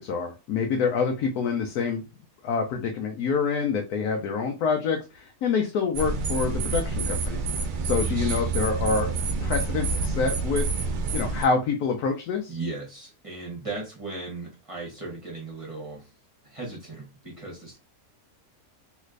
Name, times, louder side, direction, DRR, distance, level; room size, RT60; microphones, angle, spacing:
voice 1, 0.0-2.0 2.4-7.4 7.8-9.1 9.4-10.7 11.1-12.6, left 5 dB, 90° left, 3 dB, 1.1 m, -26 dB
sound 1, 5.9-11.4, right 3 dB, 85° right, 0.4 m, -28 dB
voice 2, 12.5-16.1 16.4-17.8, right 3 dB, 25° right, -3 dB, 1.3 m, -37 dB
3.2 x 3.1 x 2.4 m, 0.28 s
omnidirectional pair, 1.5 m